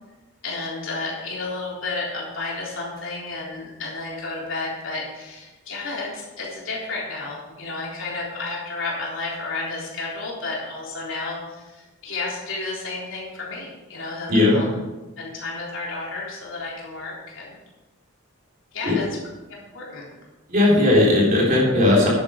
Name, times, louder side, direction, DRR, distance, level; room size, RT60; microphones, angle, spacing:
voice 1, 0.4-14.8 15.2-17.5 18.7-20.0, left 3 dB, 60° left, -4 dB, 3.7 m, -32 dB
voice 2, 20.5-22.1, left 2 dB, 40° right, -4 dB, 3.6 m, -17 dB
10.5 x 8.8 x 5.1 m, 1.1 s
head